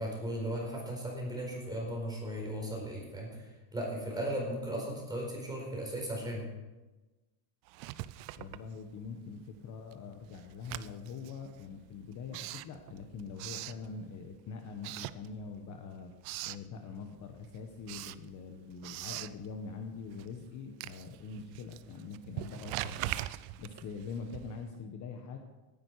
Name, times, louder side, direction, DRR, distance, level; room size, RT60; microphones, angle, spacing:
voice 1, 0.0-6.5, right 1 dB, 10° right, -2 dB, 4.5 m, -36 dB
Writing, 7.7-9.3 9.6-14.4 14.8-15.7 16.0-16.7 17.1-24.8, right 16 dB, 85° right, 0.7 m, -43 dB
voice 2, 8.4-16.1 16.4-23.2 23.6-25.4, left 5 dB, 40° left, 4 dB, 1.2 m, -44 dB
17.5 x 10.5 x 4.8 m, 1.1 s
cardioid pair, 165°, 47 cm